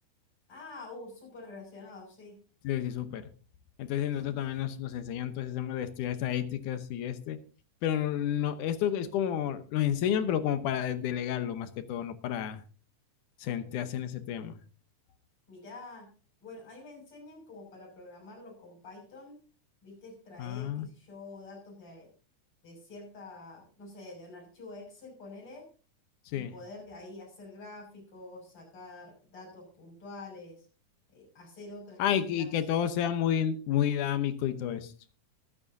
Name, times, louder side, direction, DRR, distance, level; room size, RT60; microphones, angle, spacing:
voice 1, 0.5-2.4 4.3-4.4 15.5-16.1 16.4-19.4 19.8-22.1 22.6-25.7 26.3-30.7 31.1-32.5, left 2 dB, 45° left, -1 dB, 7.3 m, -47 dB
voice 2, 2.6-3.3 3.8-7.4 7.8-12.6 13.4-14.6 20.4-20.9 26.3-26.5 32.0-34.9, left 10 dB, 80° left, 10 dB, 2.5 m, -30 dB
24.5 x 9.0 x 2.7 m, 0.36 s
omnidirectional pair, 3.5 m